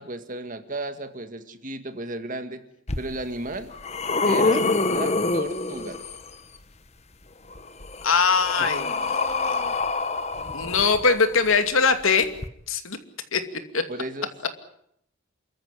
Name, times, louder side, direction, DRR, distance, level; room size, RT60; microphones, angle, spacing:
voice 1, 0.0-2.6 3.0-3.7 4.2-6.0 13.9-14.3, right 2 dB, 40° right, 8 dB, 2.0 m, -34 dB
sound 1, 2.9-3.0 3.5-6.3 7.5-11.4 12.4-12.5, left 3 dB, 30° left, 1.2 m, -26 dB
voice 2, 8.0-9.6 10.5-12.3 12.7-13.0 13.3-13.4 13.7-13.8, left 5 dB, 75° left, 8 dB, 2.5 m, -22 dB
28.0 x 14.5 x 9.8 m, 0.73 s
head